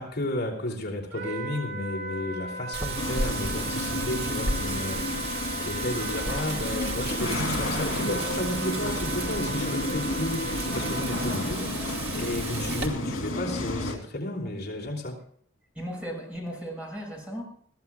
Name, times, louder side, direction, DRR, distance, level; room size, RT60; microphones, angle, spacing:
voice 1, 0.0-15.2, left 1 dB, 55° left, -2 dB, 2.9 m, -33 dB
Wind instrument woodwind instrument, 1.1-11.5, right 1 dB, 75° right, 7.1 m, -38 dB
Wind, 2.7-12.9, right 3 dB, 55° right, 2.5 m, -34 dB
sound 1, 3.0-14.0, left 2 dB, 80° left, 3.0 m, -32 dB
voice 2, 15.7-17.4, equal, 5° right, -1 dB, 5.9 m, -36 dB
21.0 x 15.0 x 2.3 m, 0.63 s
head